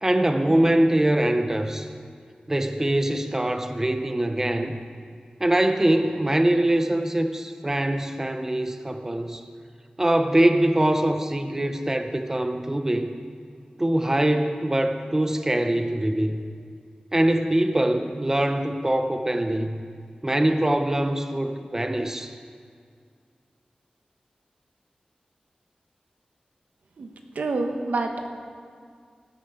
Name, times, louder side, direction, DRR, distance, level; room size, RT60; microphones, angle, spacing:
voice 1, 0.0-1.9 2.5-4.8 5.4-9.4 10.0-13.1 13.8-16.4 17.1-19.8 20.2-22.3, right 1 dB, 15° right, 7 dB, 0.7 m, -23 dB
voice 2, 27.3-28.3, right 3 dB, 90° right, 4 dB, 1.0 m, -27 dB
17.5 x 8.2 x 5.0 m, 2.1 s
wide cardioid pair, 95°, 3 cm